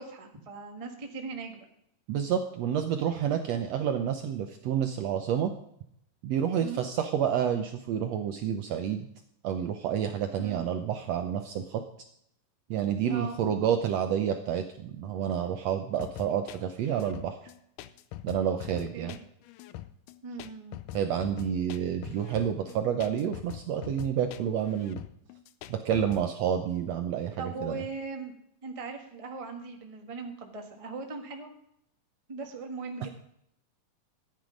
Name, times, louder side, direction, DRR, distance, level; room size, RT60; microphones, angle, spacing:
voice 1, 0.0-1.6 6.6-6.8 10.4-10.7 13.0-13.3 18.9-19.2 20.2-20.8 27.4-28.3 28.6-31.5 32.3-33.1, right 4 dB, 35° right, 2 dB, 0.5 m, -39 dB
voice 2, 2.1-5.5 6.2-9.1 9.4-11.8 12.7-17.4 18.2-19.1 20.9-25.0 25.7-27.8, right 9 dB, 75° right, 6 dB, 1.6 m, -29 dB
sound 1, 16.0-26.3, left 14 dB, 80° left, 2.2 m, -43 dB
13.5 x 9.6 x 5.2 m, 0.74 s
omnidirectional pair, 3.9 m